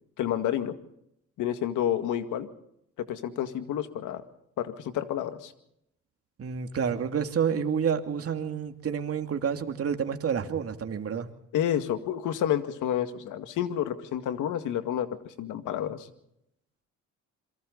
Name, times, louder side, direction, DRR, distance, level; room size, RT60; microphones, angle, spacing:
voice 1, 0.2-0.7 1.4-2.5 3.0-4.2 4.6-5.5 11.5-16.1, left 10 dB, 85° left, 9 dB, 2.1 m, -29 dB
voice 2, 6.4-11.3, right 7 dB, 50° right, 6 dB, 2.6 m, -29 dB
27.5 x 23.5 x 4.0 m, 0.76 s
cardioid pair, 90°, 30 cm